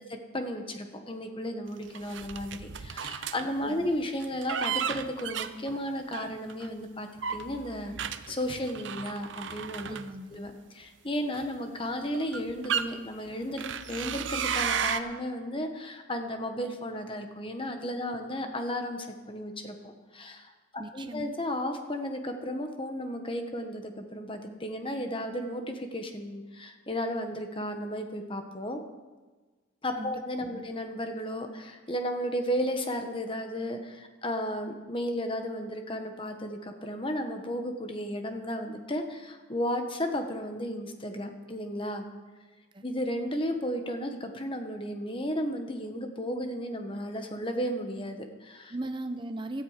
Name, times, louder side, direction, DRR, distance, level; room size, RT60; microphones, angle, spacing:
voice 1, 0.0-10.0 10.3-28.8 29.8-42.0 42.8-48.7, equal, 25° left, 5 dB, 1.4 m, -34 dB
sound 1, 1.9-3.5 4.2-6.7 7.2-10.5 11.3-11.5 12.1-12.9 13.6-15.0, right 7 dB, 60° right, 0.7 m, -33 dB
voice 2, 9.9-10.3 20.8-21.3 30.0-30.1 30.4-30.7 42.7-42.8 48.7-49.6, right 1 dB, 25° right, 7 dB, 0.7 m, -38 dB
17.0 x 13.0 x 5.0 m, 1.3 s
head